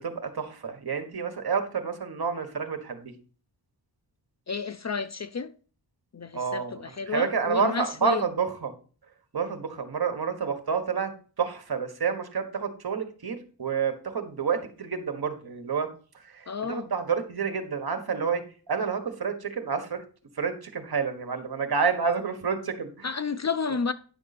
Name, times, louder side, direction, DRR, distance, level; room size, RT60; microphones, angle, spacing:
voice 1, 0.0-3.1 6.3-8.7 9.3-11.1 11.4-15.9 16.2-18.4 18.7-20.0 20.4-23.1, right 6 dB, 55° right, 1.5 m, -29 dB
voice 2, 4.5-5.5 6.1-8.3 16.5-16.9 23.0-23.9, left 5 dB, 40° left, 0.5 m, -31 dB
10.0 x 6.3 x 4.2 m
wide cardioid pair, 165°, 44 cm